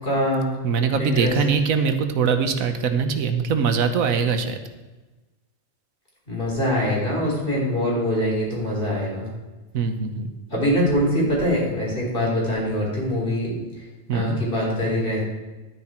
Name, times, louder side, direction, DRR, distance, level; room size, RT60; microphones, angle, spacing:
voice 1, 0.0-0.5 1.0-1.3 6.3-9.3 10.5-13.6 14.1-15.2, equal, 40° left, -4 dB, 4.1 m, -23 dB
voice 2, 0.6-4.6 9.7-10.3 14.1-14.4, right 6 dB, 90° right, 8 dB, 1.4 m, -22 dB
12.0 x 9.6 x 4.4 m, 1.2 s
omnidirectional pair, 1.4 m